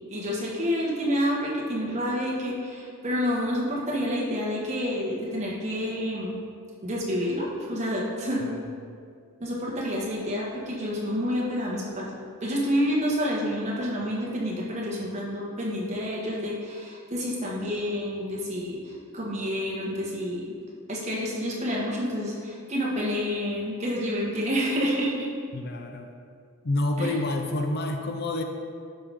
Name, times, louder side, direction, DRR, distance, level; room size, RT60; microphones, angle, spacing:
voice 1, 0.1-6.4 6.8-8.5 9.4-12.1 12.4-20.5 20.9-25.3 27.0-27.2, equal, 30° right, -4 dB, 1.5 m, -28 dB
voice 2, 25.5-26.1 26.6-28.4, left 2 dB, 45° left, 4 dB, 0.5 m, -28 dB
12.0 x 5.4 x 3.6 m, 2.3 s
head